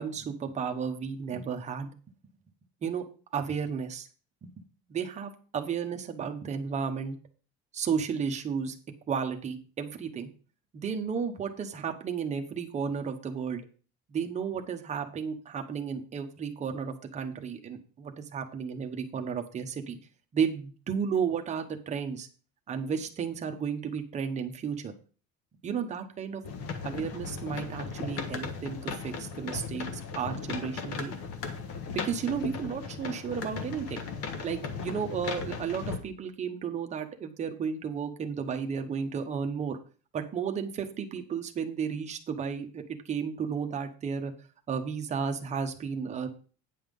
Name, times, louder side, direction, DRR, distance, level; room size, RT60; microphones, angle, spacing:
voice 1, 0.0-1.9 2.8-3.0 3.3-4.1 4.4-4.6 4.9-7.2 7.7-8.8 9.1-10.3 10.7-13.6 14.1-20.0 20.3-22.3 22.7-24.9 25.6-26.4 26.8-31.1 31.9-34.1 34.4-39.8 40.1-44.3 44.7-46.3, right 6 dB, 25° right, 4 dB, 1.0 m, -33 dB
sound 1, 26.4-36.0, left 5 dB, 50° left, 1.5 m, -37 dB
9.4 x 5.7 x 5.3 m, 0.38 s
cardioid pair, 180°, 30 cm